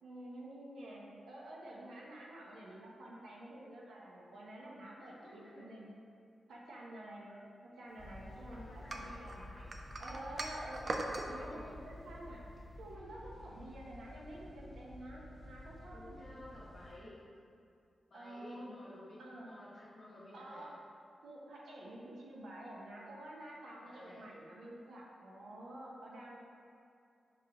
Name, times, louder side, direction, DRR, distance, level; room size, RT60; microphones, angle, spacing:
voice 1, 0.0-6.0 6.5-7.4 7.8-9.4 10.0-12.4 12.8-16.6 18.1-18.8 19.2-19.5 20.3-20.8 21.2-26.4, right 1 dB, 85° right, -3 dB, 0.7 m, -49 dB
voice 2, 5.0-5.7 8.5-9.7 11.2-11.7 15.9-17.2 18.1-20.7 23.8-24.3, left 1 dB, 50° left, -10 dB, 1.0 m, -53 dB
sound 1, 8.0-16.9, left 1 dB, 5° left, 1.4 m, -52 dB
sound 2, 8.9-11.3, right 2 dB, 50° right, 0.4 m, -40 dB
6.4 x 2.9 x 2.4 m, 2.5 s
cardioid pair, 60°, 0 cm